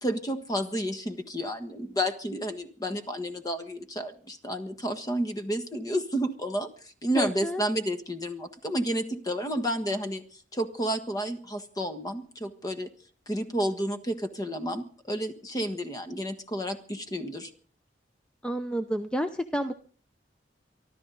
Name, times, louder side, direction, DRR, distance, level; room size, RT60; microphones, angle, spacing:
voice 1, 0.0-6.7 7.0-12.9 13.3-17.5, equal, 20° left, 8 dB, 1.5 m, -31 dB
voice 2, 7.2-7.6 18.4-19.7, equal, 5° left, 8 dB, 0.7 m, -29 dB
24.5 x 13.5 x 4.0 m, 0.43 s
head